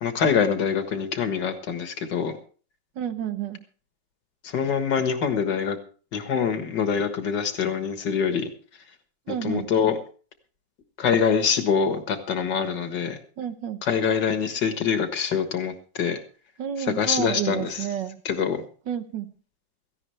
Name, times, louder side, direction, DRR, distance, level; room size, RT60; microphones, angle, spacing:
voice 1, 0.0-2.4 4.4-5.8 6.1-8.5 9.3-10.0 11.0-13.2 13.8-16.2 16.8-17.9 18.3-18.6, left 6 dB, 80° left, 7 dB, 2.2 m, -25 dB
voice 2, 3.0-3.6 9.3-9.7 13.4-13.8 16.6-18.2 18.9-19.3, right 9 dB, 90° right, 10 dB, 1.7 m, -30 dB
17.0 x 15.0 x 3.3 m, 0.41 s
omnidirectional pair, 1.9 m